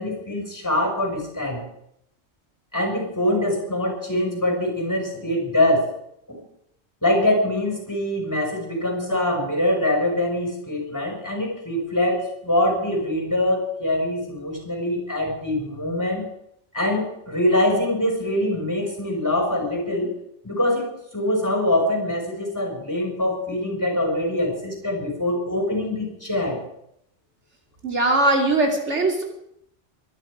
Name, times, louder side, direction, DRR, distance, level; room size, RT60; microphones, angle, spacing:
voice 1, 0.0-1.6 2.7-5.9 6.3-6.4 7.0-16.3 16.7-20.1 20.4-26.6, left 1 dB, 15° left, 1 dB, 5.5 m, -24 dB
voice 2, 27.8-29.2, right 2 dB, 85° right, 2 dB, 3.0 m, -20 dB
23.5 x 11.0 x 5.0 m, 0.73 s
omnidirectional pair, 1.2 m